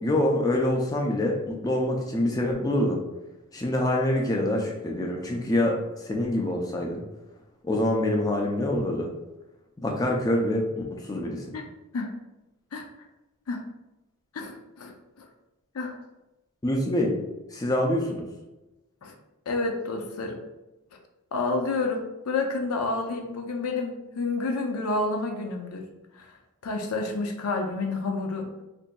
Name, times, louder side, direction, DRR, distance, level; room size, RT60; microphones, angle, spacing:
voice 1, 0.0-3.0 3.5-5.8 6.0-7.0 7.6-9.1 9.8-11.5 16.6-17.1 17.5-18.3, left 1 dB, 15° left, 0 dB, 0.4 m, -25 dB
voice 2, 14.3-14.9 15.7-16.0 19.0-19.1 19.5-20.4 21.3-25.8 26.2-26.3 26.6-28.6, left 3 dB, 90° left, 3 dB, 0.5 m, -29 dB
3.9 x 2.6 x 2.2 m, 1.0 s
head